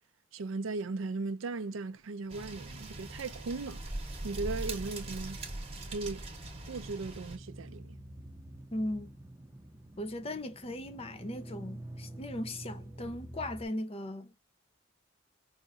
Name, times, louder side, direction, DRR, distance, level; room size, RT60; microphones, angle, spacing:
voice 1, 0.3-3.8 4.2-5.4 5.9-6.3 6.7-8.0, right 3 dB, 85° right, 0.5 m, -37 dB
sound 1, 2.3-7.4, right 2 dB, 30° right, 0.9 m, -41 dB
sound 2, 7.0-13.7, right 1 dB, 15° right, 0.6 m, -48 dB
voice 2, 8.7-9.1 10.0-14.3, left 1 dB, 30° left, 0.6 m, -38 dB
4.9 x 2.5 x 2.5 m
head